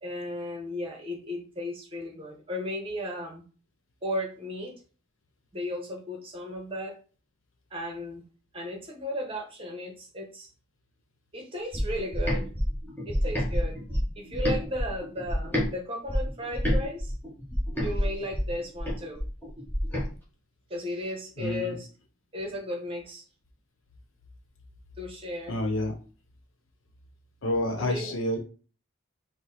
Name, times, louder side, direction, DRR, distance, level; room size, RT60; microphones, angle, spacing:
voice 1, 0.0-3.4 4.0-4.8 5.5-7.0 7.7-8.2 8.5-10.5 11.3-12.5 13.1-13.8 14.2-17.1 17.8-19.2 20.7-21.9 22.3-23.2 25.0-25.6 27.8-28.2, left 1 dB, 25° right, 2 dB, 1.0 m, -35 dB
sound 1, 11.7-15.7 16.1-20.1, equal, 10° left, 1.1 m, -29 dB
voice 2, 21.4-21.8 25.5-25.9 27.4-28.4, left 1 dB, 85° left, 5 dB, 0.9 m, -28 dB
4.7 x 2.2 x 4.0 m, 0.37 s
head